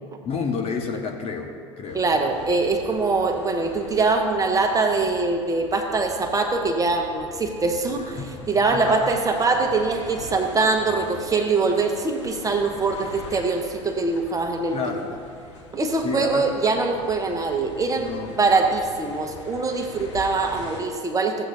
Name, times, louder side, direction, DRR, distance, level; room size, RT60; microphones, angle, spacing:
voice 1, 0.2-2.0 8.2-9.1 14.7-15.1 16.0-16.5 17.9-18.4, left 5 dB, 40° left, 2 dB, 1.2 m, -30 dB
sound 1, 1.9-20.8, left 1 dB, 75° left, 1.6 m, -42 dB
voice 2, 1.9-14.8 15.7-21.5, right 3 dB, 20° right, 4 dB, 1.0 m, -23 dB
15.0 x 8.0 x 2.7 m, 2.1 s
hypercardioid pair, 75°, 16 cm